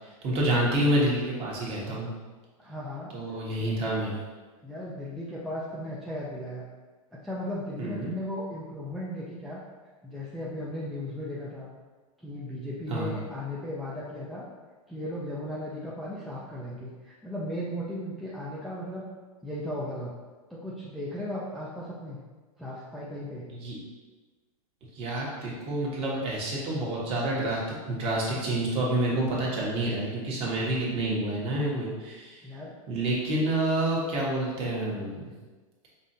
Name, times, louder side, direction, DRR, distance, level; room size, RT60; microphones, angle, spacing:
voice 1, 0.2-2.1 3.1-4.1 7.8-8.1 12.9-13.1 23.5-23.8 25.0-27.6 27.9-32.4 32.9-35.3, right 1 dB, 30° right, -4 dB, 1.2 m, -28 dB
voice 2, 2.6-3.1 4.6-6.6 7.1-9.6 10.0-11.7 12.2-14.4 14.9-19.1 19.4-20.1 20.5-22.2 22.6-23.5 32.4-32.8, left 1 dB, ahead, -7 dB, 0.4 m, -36 dB
5.3 x 2.5 x 2.7 m, 1.3 s
hypercardioid pair, 125°, 19 cm